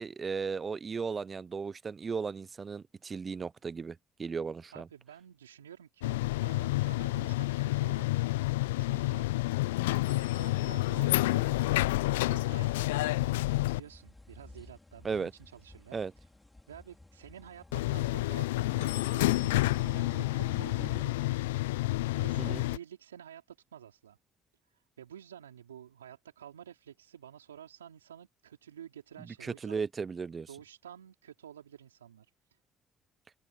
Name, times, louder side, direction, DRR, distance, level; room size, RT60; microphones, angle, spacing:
voice 1, 0.0-4.9 15.0-15.3 15.9-16.1 22.4-22.6 29.2-30.5, right 5 dB, 40° right, 0.5 m, -36 dB
voice 2, 4.7-8.3 8.8-9.3 10.0-11.7 12.1-16.0 16.7-21.4 22.2-24.2 24.7-29.8 30.5-32.6, right 9 dB, 90° right, 4.2 m, -50 dB
sound 1, 6.0-13.8 17.7-22.8, left 19 dB, 80° left, 0.4 m, -29 dB
sound 2, 12.6-21.0, left 2 dB, 15° left, 4.8 m, -51 dB
open air
hypercardioid pair, 50°, 0 cm